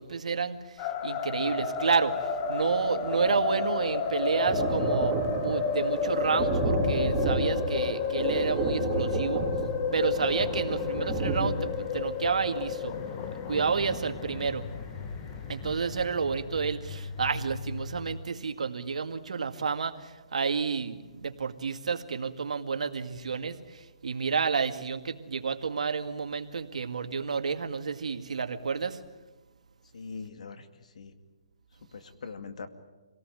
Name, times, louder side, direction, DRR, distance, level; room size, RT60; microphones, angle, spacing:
voice 1, 0.0-9.5 9.9-13.0 13.5-14.7 15.5-29.0, right 5 dB, 85° right, 8 dB, 2.0 m, -30 dB
sound 1, 0.8-18.2, left 6 dB, 25° left, 1.4 m, -32 dB
Thunder, 2.0-2.1 2.3-14.9 15.4-15.5 15.8-15.9, right 3 dB, 20° right, 3.5 m, -33 dB
voice 2, 29.9-30.6 31.0-31.1 31.9-32.7, left 4 dB, 75° left, 9 dB, 2.3 m, -41 dB
26.5 x 18.5 x 9.1 m, 1.2 s
hypercardioid pair, 160°, 4 cm